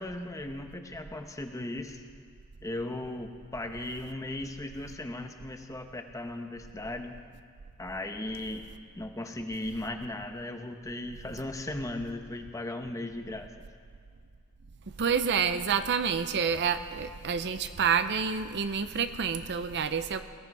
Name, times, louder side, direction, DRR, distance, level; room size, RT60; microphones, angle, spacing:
voice 1, 0.0-2.0 2.6-7.1 7.8-8.6 8.9-13.5, left 1 dB, 15° left, 5 dB, 0.9 m, -37 dB
voice 2, 15.0-20.2, right 6 dB, 50° right, 10 dB, 0.6 m, -28 dB
20.0 x 15.0 x 4.7 m, 2.1 s
head